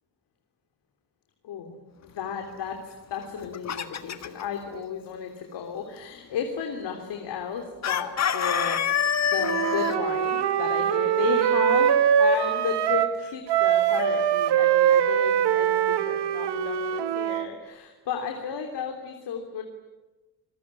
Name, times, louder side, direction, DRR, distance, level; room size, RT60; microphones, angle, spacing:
voice 1, 1.4-9.0 9.3-19.6, left 6 dB, 80° left, 4 dB, 3.4 m, -33 dB
Chicken rooster, 3.2-4.4 7.8-10.0, left 8 dB, 40° left, 1.7 m, -26 dB
Wind instrument woodwind instrument, 9.4-13.2 13.5-17.5, right 9 dB, 80° right, 1.7 m, -23 dB
27.5 x 21.5 x 9.8 m, 1.1 s
cardioid pair, 170°, 40 cm